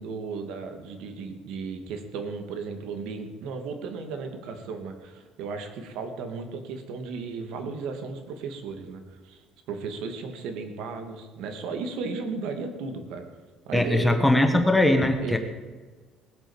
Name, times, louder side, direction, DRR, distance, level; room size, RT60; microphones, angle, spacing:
voice 1, 0.0-13.2 13.7-14.2 15.2-15.4, right 4 dB, 70° right, 6 dB, 2.4 m, -35 dB
voice 2, 13.7-15.4, left 1 dB, 5° left, 5 dB, 1.2 m, -21 dB
20.0 x 8.2 x 7.3 m, 1.4 s
cardioid pair, 170°, 0 cm